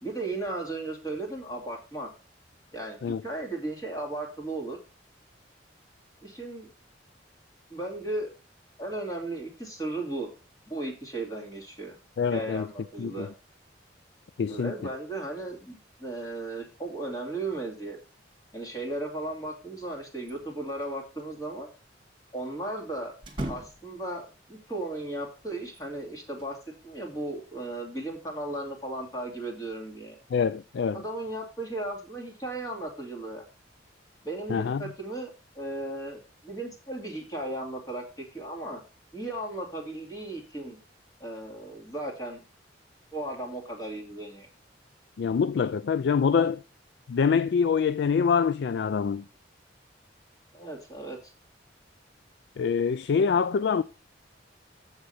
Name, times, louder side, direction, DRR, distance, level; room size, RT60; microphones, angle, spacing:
voice 1, 0.0-2.1 2.7-4.8 6.2-6.7 7.7-8.3 8.8-10.3 10.7-12.0 12.3-13.3 14.5-18.0 18.5-21.7 22.3-23.1 23.5-26.6 26.8-30.2 30.9-33.4 34.2-38.8 39.1-40.8 41.2-42.4 43.1-44.5 50.5-51.3, right 2 dB, 20° left, 2.5 m, -36 dB
voice 2, 12.2-12.7 13.0-13.3 14.4-14.7 30.3-31.0 34.5-34.8 45.2-46.6 47.1-49.2 52.6-53.8, left 6 dB, 60° left, 0.3 m, -25 dB
sound 1, 20.2-20.9 21.2-21.3 23.2-24.1 25.6-26.6, right 1 dB, 30° right, 2.2 m, -39 dB
7.3 x 6.3 x 5.6 m
head